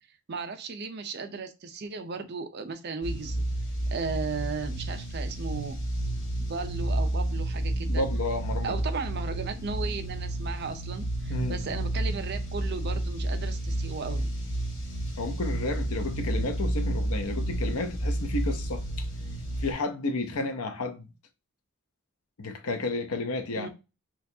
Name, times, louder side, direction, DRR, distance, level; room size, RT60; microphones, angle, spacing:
voice 1, 0.3-3.4 3.9-5.8 6.5-8.1 8.6-14.3 23.6-23.7, right 4 dB, 45° right, 0.5 m, -36 dB
sound 1, 3.0-19.7, right 1 dB, 65° left, 1.3 m, -31 dB
voice 2, 7.9-8.8 11.3-11.6 15.2-19.1 19.6-21.1 22.4-23.7, left 2 dB, 80° left, 0.7 m, -32 dB
4.6 x 2.4 x 2.6 m
head